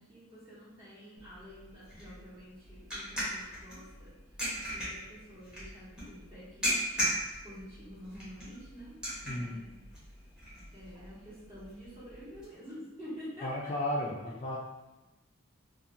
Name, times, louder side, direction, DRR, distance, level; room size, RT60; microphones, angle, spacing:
voice 1, 0.0-4.1 4.7-6.7 7.4-9.7 10.7-13.7, equal, 30° right, -10 dB, 1.2 m, -48 dB
sound 1, 1.2-12.5, equal, 5° right, 0.9 m, -39 dB
voice 2, 9.3-9.6 13.4-14.6, left 1 dB, 30° left, -4 dB, 0.3 m, -34 dB
2.6 x 2.4 x 2.5 m, 1.0 s
head